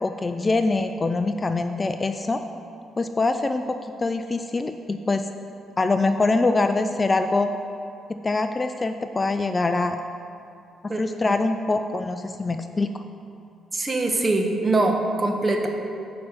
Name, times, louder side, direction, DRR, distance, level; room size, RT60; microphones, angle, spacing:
voice 1, 0.0-2.4 3.0-5.3 5.8-7.5 8.1-10.0 10.8-13.0, left 3 dB, 25° left, 8 dB, 0.3 m, -24 dB
voice 2, 10.9-11.3 13.7-15.7, right 2 dB, 25° right, 3 dB, 1.0 m, -23 dB
6.7 x 5.4 x 6.7 m, 2.5 s
cardioid pair, 90°, 0 cm